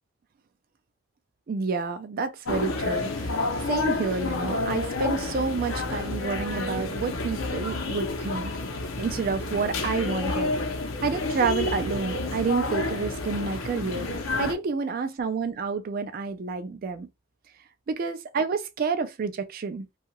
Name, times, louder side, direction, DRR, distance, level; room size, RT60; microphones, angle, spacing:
voice 1, 1.5-8.5 9.0-10.5 11.0-14.1 14.4-17.1 17.9-19.9, right 5 dB, 45° right, 0.3 m, -29 dB
sound 1, 2.5-14.5, left 3 dB, 80° left, 0.7 m, -29 dB
2.8 x 2.3 x 2.9 m
head